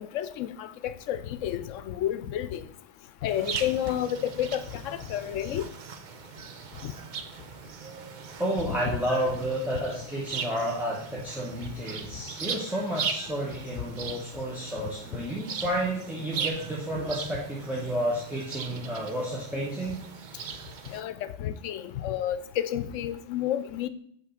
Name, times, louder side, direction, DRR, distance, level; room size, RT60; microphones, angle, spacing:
voice 1, 0.0-2.6 3.2-5.6 6.8-6.9 20.9-21.1 21.4-23.9, left 11 dB, 90° left, 14 dB, 1.0 m, -30 dB
sound 1, 3.3-21.0, right 6 dB, 50° right, 0.6 m, -39 dB
voice 2, 8.4-20.0, right 1 dB, ahead, -4 dB, 1.2 m, -31 dB
5.7 x 4.9 x 6.3 m, 0.64 s
omnidirectional pair, 1.3 m